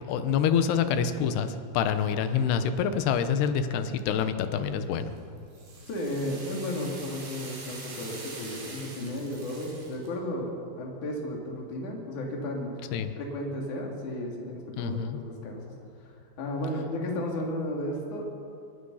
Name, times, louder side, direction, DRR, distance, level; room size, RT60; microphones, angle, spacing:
voice 1, 0.1-5.1 12.9-13.1 14.8-15.2, left 7 dB, 75° left, 9 dB, 3.0 m, -26 dB
sound 1, 4.9-10.1, right 3 dB, 80° right, 7.4 m, -44 dB
voice 2, 5.9-10.5 10.8-12.9 13.2-15.6 16.0-18.2, left 1 dB, 45° left, -1 dB, 4.2 m, -34 dB
25.0 x 20.5 x 5.7 m, 2.5 s
omnidirectional pair, 5.1 m